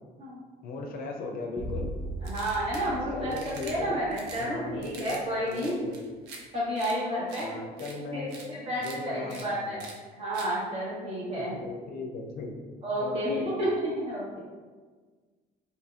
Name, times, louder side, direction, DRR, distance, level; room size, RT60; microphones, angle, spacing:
voice 1, 0.6-1.9 3.1-4.0 4.4-5.2 5.5-6.0 7.4-8.3 8.8-9.9 11.3-12.7 13.0-13.5, left 3 dB, 60° left, 2 dB, 0.4 m, -38 dB
sound 1, 1.6-5.6, right 1 dB, ahead, 0.3 m, -39 dB
voice 2, 2.2-5.8 6.5-7.5 8.1-9.9 10.2-11.6 12.8-14.4, equal, 35° right, -8 dB, 1.3 m, -31 dB
sound 2, 2.2-2.9 3.3-3.7 4.1-4.5 4.8-5.2 5.5-6.4 6.8-6.9 7.3-7.5 7.8-7.9 8.3-8.5 8.8-9.0 9.3-9.4 9.8-9.9 10.3-10.5, right 4 dB, 85° right, 0.5 m, -45 dB
2.8 x 2.6 x 2.3 m, 1.4 s
cardioid pair, 110°, 17 cm